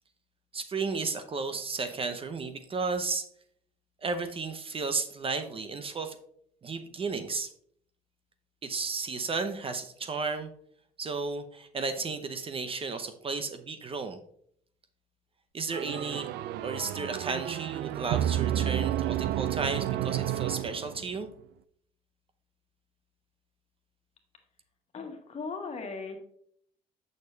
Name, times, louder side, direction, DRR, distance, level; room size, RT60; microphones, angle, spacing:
voice 1, 0.5-3.3 4.0-6.2 6.6-7.5 8.6-10.5 11.0-14.2 15.5-16.3 16.6-21.3, right 4 dB, 35° right, 9 dB, 0.7 m, -33 dB
sound 1, 15.7-21.3, right 12 dB, 80° right, 0.4 m, -31 dB
voice 2, 24.9-26.2, left 4 dB, 40° left, 4 dB, 1.7 m, -37 dB
8.1 x 6.5 x 3.3 m, 0.66 s
cardioid pair, 110°, 17 cm